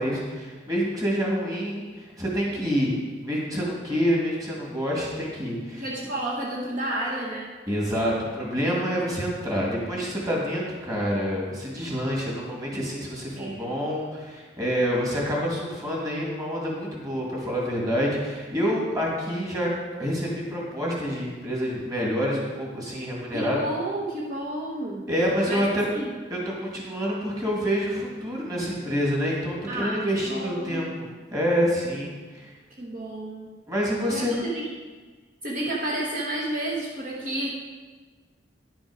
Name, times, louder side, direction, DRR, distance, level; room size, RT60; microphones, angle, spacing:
voice 1, 0.0-2.9 3.2-5.9 7.7-19.7 20.0-23.6 25.1-25.9 26.3-30.9 31.3-32.5 33.7-34.3, equal, 20° right, -4 dB, 2.1 m, -27 dB
voice 2, 5.7-7.5 13.4-13.7 23.3-25.1 25.5-25.6 25.9-26.1 29.7-30.9 32.8-33.5 34.1-34.6 35.4-37.5, right 1 dB, 50° right, -4 dB, 1.1 m, -31 dB
10.5 x 6.2 x 4.9 m, 1.4 s
head